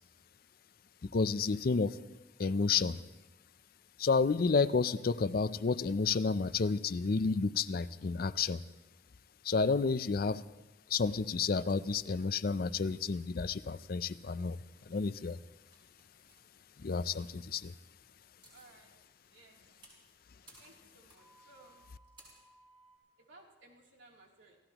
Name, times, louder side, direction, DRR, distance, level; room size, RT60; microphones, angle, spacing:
voice 1, 1.1-2.0 2.4-3.0 4.0-8.6 9.4-10.4 10.9-14.6 14.9-15.4 16.8-17.7, left 4 dB, 50° left, 15 dB, 0.5 m, -30 dB
sound 1, 10.1-10.3 11.7-12.8 13.1-14.0 14.6-14.9 15.6-16.4 17.9-18.0 18.2-18.8 19.2-23.0, right 2 dB, 30° right, 6.3 m, -62 dB
voice 2, 18.5-18.9 19.3-19.6 20.6-21.8 23.2-24.6, right 2 dB, 85° right, -1 dB, 3.0 m, -59 dB
30.0 x 15.5 x 3.0 m, 1.0 s
head